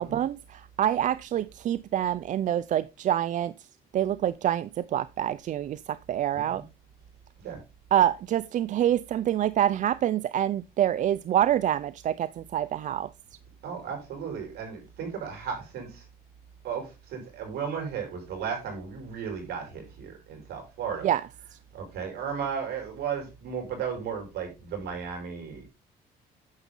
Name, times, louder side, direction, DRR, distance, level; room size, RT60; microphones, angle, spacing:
voice 1, 0.0-3.5 3.9-6.6 7.9-13.1 21.0-21.2, right 11 dB, 50° right, 0.4 m, -26 dB
voice 2, 13.6-16.0 16.6-21.1 21.7-25.7, right 7 dB, 70° right, 5.3 m, -35 dB
9.6 x 7.1 x 3.8 m
cardioid pair, 110°, 17 cm